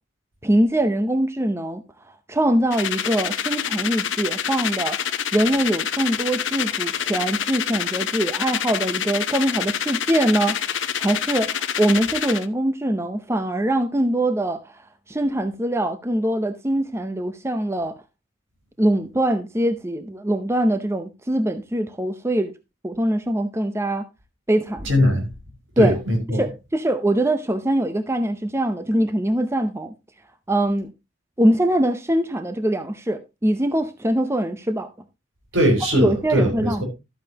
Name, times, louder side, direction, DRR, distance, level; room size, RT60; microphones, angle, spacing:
voice 1, 0.4-10.7 11.0-14.8 15.1-18.0 18.8-22.5 22.8-24.1 24.5-24.9 25.8-26.0 26.3-29.9 30.5-30.9 31.4-34.9 35.9-36.8, right 1 dB, 15° right, 0.6 m, -23 dB
sound 1, 2.7-12.5, left 9 dB, 65° left, 0.9 m, -27 dB
voice 2, 24.8-25.3 25.8-26.4 35.5-36.8, equal, 75° right, 4.9 m, -20 dB
12.5 x 8.8 x 2.8 m
head